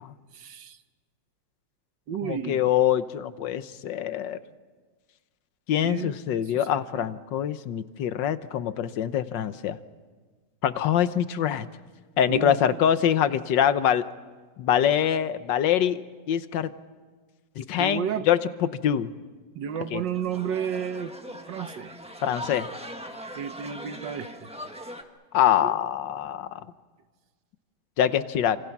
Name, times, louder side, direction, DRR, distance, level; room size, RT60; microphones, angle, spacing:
voice 1, 0.3-0.8 2.1-2.7 5.8-6.2 6.5-7.1 12.3-12.6 17.8-18.3 19.5-21.1 21.5-22.0 23.4-24.5 25.6-25.7, right 8 dB, 85° right, 10 dB, 1.8 m, -32 dB
voice 2, 2.2-4.4 5.7-9.8 10.6-11.7 12.2-14.0 14.6-16.7 17.6-18.4 18.8-19.1 19.9-20.0 22.2-22.7 25.3-26.6 28.0-28.6, left 10 dB, 85° left, 13 dB, 1.6 m, -24 dB
sound 1, 19.8-25.0, equal, 5° right, 1.3 m, -40 dB
28.5 x 26.0 x 6.0 m, 1.4 s
omnidirectional pair, 1.9 m